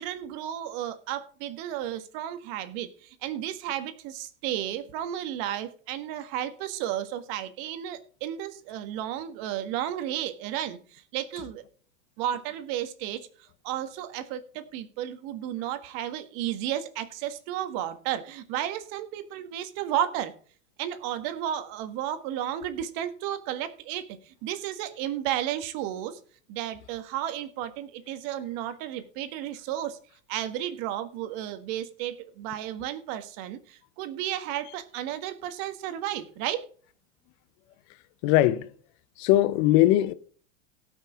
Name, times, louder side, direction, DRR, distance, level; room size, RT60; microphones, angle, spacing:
voice 1, 0.0-11.6 12.2-20.3 20.8-26.2 26.5-30.0 30.3-36.7, right 11 dB, 55° right, 1.7 m, -33 dB
voice 2, 38.2-38.7 39.2-40.1, left 15 dB, 55° left, 1.0 m, -20 dB
18.0 x 6.2 x 3.6 m
hypercardioid pair, 95°, 40 cm